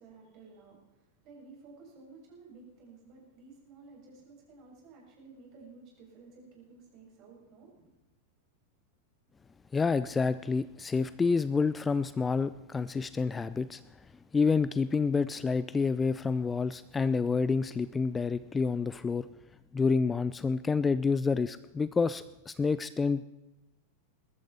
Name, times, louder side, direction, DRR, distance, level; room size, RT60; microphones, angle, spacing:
voice 1, 0.0-8.0, right 4 dB, 40° right, -2 dB, 7.1 m, -54 dB
voice 2, 9.7-13.8 14.3-19.3 19.7-23.2, left 4 dB, 15° left, 16 dB, 0.4 m, -28 dB
21.0 x 14.0 x 4.3 m, 1.0 s
figure-of-eight pair, 90°, 0 cm